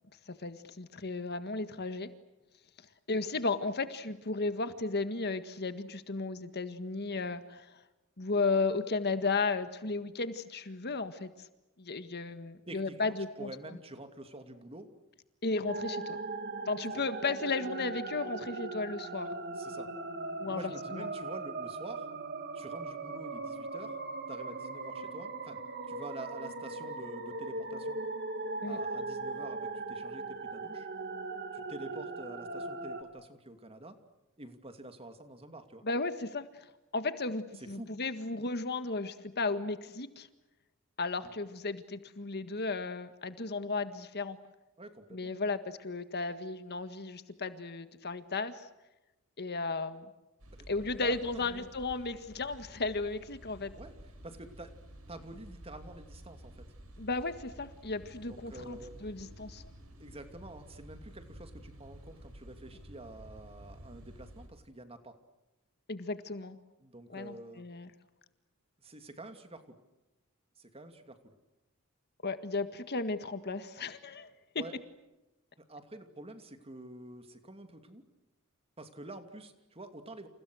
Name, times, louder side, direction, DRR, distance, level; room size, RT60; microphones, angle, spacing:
voice 1, 0.3-2.1 3.1-7.6 8.2-11.5 11.8-13.5 15.4-16.2 16.7-19.3 20.4-21.1 28.6-28.8 35.8-36.7 36.9-40.3 41.0-44.4 45.1-48.7 49.4-50.0 50.7-53.7 57.0-59.7 65.9-66.6 67.1-67.9 72.2-74.3, left 3 dB, 50° left, 10 dB, 1.7 m, -34 dB
voice 2, 12.7-14.9 19.5-19.9 20.4-22.1 22.5-24.0 24.3-25.6 25.9-28.0 28.7-30.9 31.5-34.0 34.4-35.8 37.6-37.9 41.2-41.3 44.8-45.4 50.6-50.7 51.0-51.7 53.8-53.9 54.2-54.7 55.1-56.7 58.2-58.9 60.0-65.1 66.8-67.7 68.8-69.8 70.6-71.3 74.6-74.7 75.6-78.0 78.8-80.3, right 1 dB, 25° right, 7 dB, 2.7 m, -47 dB
sound 1, 15.7-33.0, right 3 dB, 50° right, 2.7 m, -39 dB
sound 2, 50.4-64.5, equal, 70° right, 7.1 m, -52 dB
30.0 x 29.0 x 6.4 m, 1.0 s
head